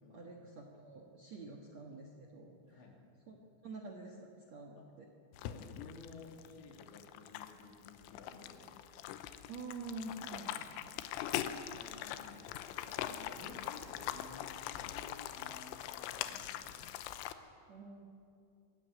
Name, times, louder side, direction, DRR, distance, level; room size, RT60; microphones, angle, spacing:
voice 1, 0.1-2.9 3.3-5.1 9.5-11.0 17.7-18.0, right 3 dB, 70° right, 1 dB, 1.6 m, -48 dB
voice 2, 2.6-3.0 4.8-4.9 5.4-8.7 11.2-16.9, left 4 dB, 65° left, 1 dB, 5.1 m, -55 dB
sound 1, 5.3-17.3, left 12 dB, 90° left, 3.4 m, -42 dB
26.0 x 14.0 x 9.1 m, 2.5 s
omnidirectional pair, 5.6 m